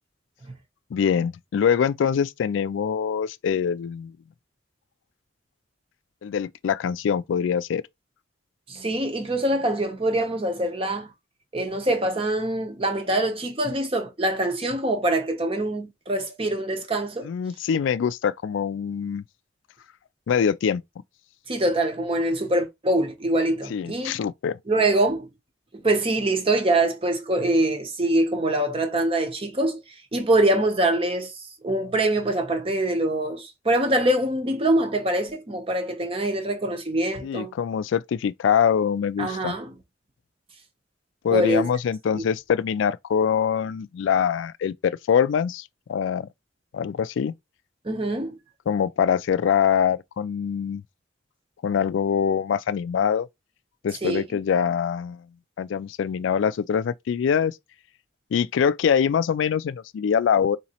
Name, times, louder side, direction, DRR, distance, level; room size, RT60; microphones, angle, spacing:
voice 1, 0.9-4.1 6.2-7.8 17.2-19.2 20.3-20.8 23.7-24.6 37.2-39.6 41.2-46.3 46.7-47.3 48.7-50.8 51.6-53.3 53.8-55.2 55.6-57.6 58.3-60.6, left 7 dB, 75° left, 0.3 m, -24 dB
voice 2, 8.7-11.1 11.5-17.3 21.5-24.2 24.7-25.3 25.7-29.8 30.1-37.5 39.2-39.7 41.3-41.6 42.1-42.2 47.8-48.4 54.0-54.2, right 1 dB, 30° right, 0.7 m, -24 dB
4.1 x 2.8 x 2.8 m
head